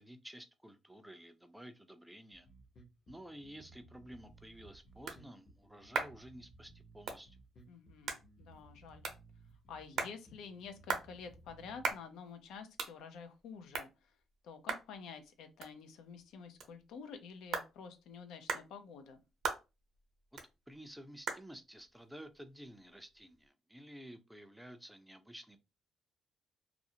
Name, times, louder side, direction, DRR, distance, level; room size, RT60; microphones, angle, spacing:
voice 1, 0.0-2.5 3.1-7.4 20.3-20.4 20.7-25.6, equal, 5° right, 0.4 m, -52 dB
Bass guitar, 2.3-11.9, right 2 dB, 40° left, 0.8 m, -60 dB
sound 1, 4.2-23.5, right 5 dB, 70° right, 0.6 m, -44 dB
voice 2, 7.7-9.1 9.7-14.2 14.4-19.2, left 6 dB, 85° left, 0.5 m, -50 dB
2.4 x 2.0 x 2.7 m
cardioid pair, 90°, 0 cm